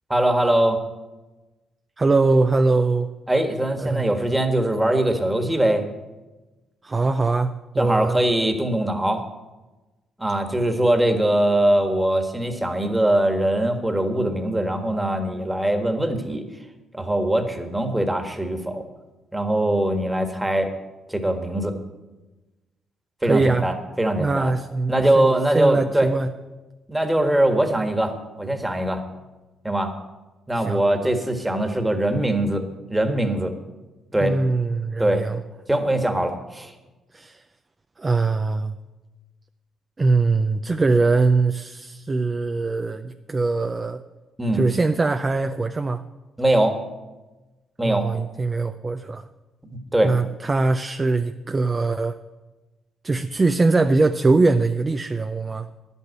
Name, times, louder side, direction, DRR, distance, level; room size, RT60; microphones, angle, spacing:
voice 1, 0.1-0.8 3.3-5.8 7.8-9.2 10.2-16.4 16.9-18.8 19.3-20.7 21.1-21.7 23.2-24.5 24.9-26.1 26.9-29.0 29.6-29.9 30.5-32.6 32.9-33.5 34.1-34.4 35.0-35.2 35.7-36.7 44.4-44.6 46.4-46.8 47.8-48.1 49.9-50.1, right 1 dB, 10° right, 6 dB, 1.6 m, -22 dB
voice 2, 2.0-3.1 3.8-4.1 6.8-8.2 23.2-23.7 24.2-26.3 30.6-30.8 34.2-35.4 37.1-37.4 38.0-38.7 40.0-44.0 44.5-46.0 47.8-49.2 50.0-52.2 53.0-55.7, right 3 dB, 25° right, 7 dB, 0.5 m, -22 dB
10.5 x 8.2 x 8.2 m, 1.1 s
cardioid pair, 90°, 0 cm